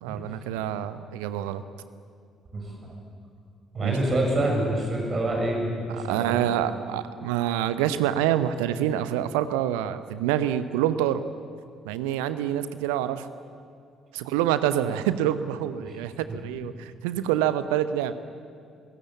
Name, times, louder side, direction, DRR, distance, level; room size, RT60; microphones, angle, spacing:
voice 1, 0.0-1.6 3.8-4.0 6.0-11.2 11.8-13.3 14.1-18.1, right 11 dB, 70° right, 13 dB, 0.8 m, -26 dB
voice 2, 3.7-6.4 15.9-16.0, right 1 dB, 40° right, 1 dB, 6.7 m, -26 dB
26.5 x 17.0 x 8.5 m, 2.4 s
figure-of-eight pair, 45°, 0 cm